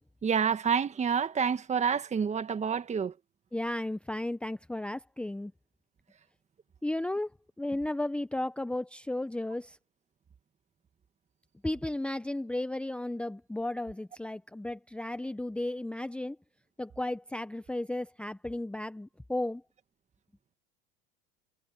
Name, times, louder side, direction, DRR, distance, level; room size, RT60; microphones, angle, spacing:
voice 1, 0.2-3.1, right 6 dB, 25° right, 1.7 m, -28 dB
voice 2, 3.5-5.5 6.8-7.3 7.6-9.8 11.6-16.4 16.8-19.6, left 1 dB, 5° left, 0.9 m, -34 dB
supercardioid pair, 105°, 29 cm